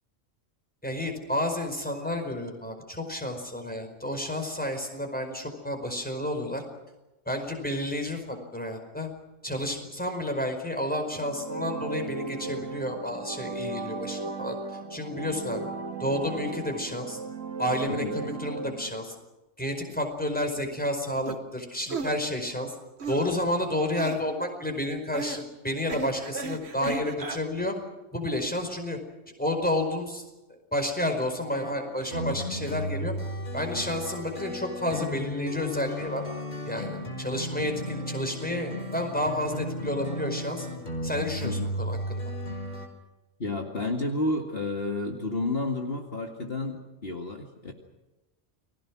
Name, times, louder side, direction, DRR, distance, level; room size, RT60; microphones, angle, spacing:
voice 1, 0.8-6.6 7.2-9.1 9.4-14.6 14.9-15.7 16.0-17.2 17.6-19.1 19.6-22.7 23.1-27.7 28.1-29.0 29.4-30.2 30.5-33.1 33.5-36.2 36.6-40.7 41.0-42.2, left 1 dB, 5° left, 4 dB, 4.9 m, -30 dB
sound 1, 11.0-18.9, right 3 dB, 80° right, 2.7 m, -36 dB
sound 2, 21.2-21.4 21.9-22.2 23.0-23.3 23.9-24.2 25.1-25.4 25.9-27.4, right 4 dB, 60° right, 1.7 m, -34 dB
sound 3, 31.5-42.9, left 1 dB, 35° left, 4.2 m, -34 dB
voice 2, 43.4-47.7, left 2 dB, 50° left, 2 dB, 2.3 m, -31 dB
30.0 x 21.5 x 6.2 m, 1.1 s
omnidirectional pair, 1.3 m